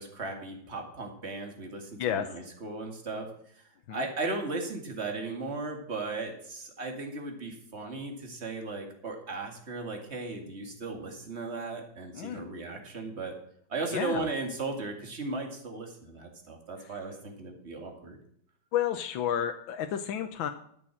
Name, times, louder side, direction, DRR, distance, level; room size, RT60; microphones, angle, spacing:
voice 1, 0.0-3.3 3.9-13.3 13.7-18.2, right 3 dB, 35° right, 3 dB, 2.4 m, -36 dB
voice 2, 12.1-12.5 13.9-14.3 18.7-20.5, left 10 dB, 85° left, 7 dB, 1.6 m, -31 dB
12.5 x 7.3 x 6.2 m, 0.67 s
omnidirectional pair, 2.1 m